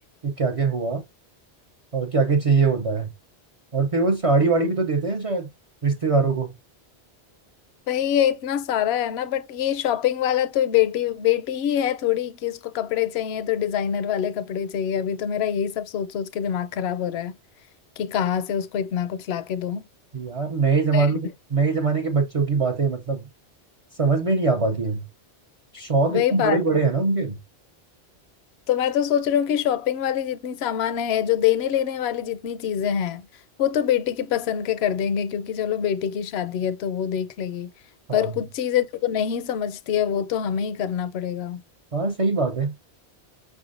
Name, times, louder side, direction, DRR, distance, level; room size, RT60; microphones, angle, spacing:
voice 1, 0.2-1.0 1.9-3.1 3.7-5.5 5.8-6.5 20.1-21.2 21.5-23.2 24.0-25.0 25.7-27.4 38.1-38.3 41.9-42.7, right 4 dB, 40° right, 0.6 m, -22 dB
voice 2, 7.9-17.3 18.0-19.8 20.9-21.2 26.1-26.6 28.7-33.3 33.6-37.7 38.1-41.6, left 10 dB, 75° left, 0.8 m, -25 dB
5.4 x 3.5 x 2.5 m
omnidirectional pair, 1.1 m